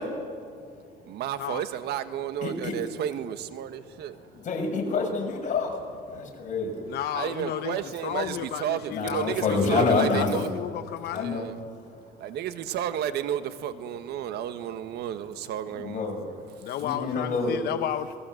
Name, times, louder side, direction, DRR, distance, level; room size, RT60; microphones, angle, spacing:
voice 1, 1.0-4.2 6.1-6.3 7.1-10.5 11.2-11.6 12.2-16.7, right 10 dB, 75° right, 1.5 m, -32 dB
voice 2, 2.4-2.7 4.3-6.8 8.9-10.4 11.1-11.4 15.7-16.3 16.8-17.6, left 4 dB, 50° left, 6.6 m, -27 dB
voice 3, 6.8-7.8 8.0-11.3 16.6-18.1, left 12 dB, 70° left, 0.9 m, -33 dB
27.0 x 20.5 x 7.9 m
cardioid pair, 110°, 17 cm